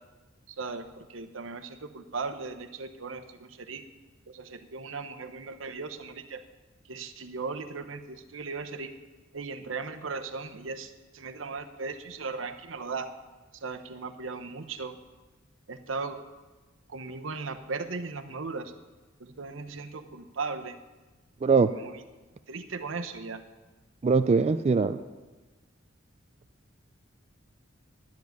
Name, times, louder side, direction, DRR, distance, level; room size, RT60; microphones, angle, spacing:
voice 1, 0.5-3.8 4.3-6.4 6.9-8.9 9.3-13.1 13.6-15.0 15.7-16.2 16.9-18.7 19.2-20.7 21.8-21.9 22.5-23.4, right 4 dB, 85° right, 7 dB, 0.9 m, -37 dB
voice 2, 21.4-21.7 24.0-25.0, right 4 dB, 35° right, 10 dB, 0.3 m, -22 dB
10.5 x 7.4 x 9.4 m, 1.2 s
head